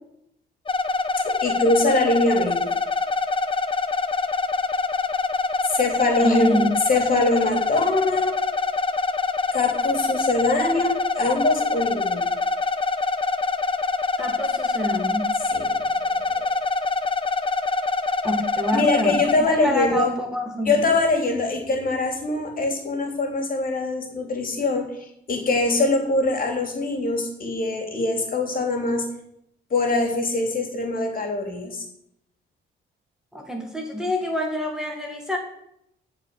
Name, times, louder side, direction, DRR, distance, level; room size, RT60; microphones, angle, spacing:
sound 1, 0.7-19.4, left 3 dB, 25° left, 1.0 m, -25 dB
voice 1, 1.2-2.7 5.7-6.6 6.9-8.3 9.5-12.3 15.5-15.7 16.3-16.5 18.7-20.1 20.6-29.0 29.7-31.9, left 2 dB, 45° left, 3 dB, 3.3 m, -23 dB
voice 2, 6.2-6.8 14.2-15.4 18.2-20.8 33.3-35.4, left 1 dB, 5° right, 1 dB, 2.2 m, -27 dB
14.5 x 5.3 x 7.8 m, 0.77 s
cardioid pair, 90°, 20 cm